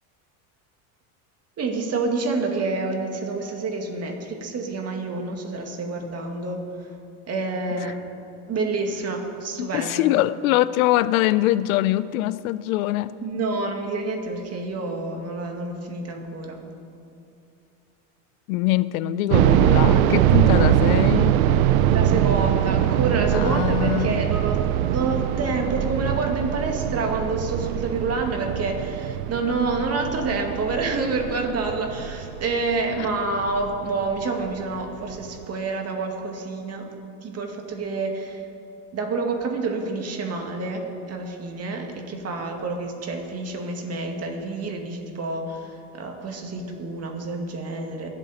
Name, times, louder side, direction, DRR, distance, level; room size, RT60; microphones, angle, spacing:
voice 1, 1.6-6.6 7.3-8.0 8.5-10.1 13.2-16.6 21.9-24.6 24.9-36.9 37.2-38.5 38.9-48.1, right 3 dB, 35° right, 2.1 m, -28 dB
voice 2, 9.6-13.2 18.5-21.5 23.3-24.2 33.0-33.1, left 15 dB, 85° left, 0.5 m, -23 dB
sound 1, 19.3-34.2 34.5-34.6 35.2-35.4, right 11 dB, 90° right, 0.6 m, -22 dB
21.5 x 7.6 x 4.3 m
supercardioid pair, 100°, 41 cm